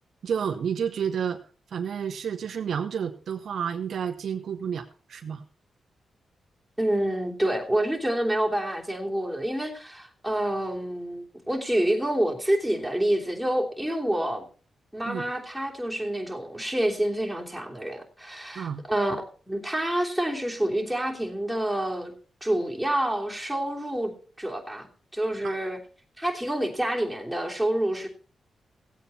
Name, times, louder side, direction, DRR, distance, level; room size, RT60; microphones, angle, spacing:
voice 1, 0.2-1.4 1.7-5.4 15.0-15.3 18.5-18.8 25.4-25.6, right 7 dB, 70° right, 6 dB, 1.0 m, -30 dB
voice 2, 6.8-14.4 14.9-19.2 19.5-22.1 22.4-24.1 24.4-24.9 25.1-25.8 26.2-28.1, right 1 dB, 5° right, -1 dB, 3.0 m, -27 dB
16.5 x 8.5 x 4.3 m, 0.40 s
cardioid pair, 60°, 0 cm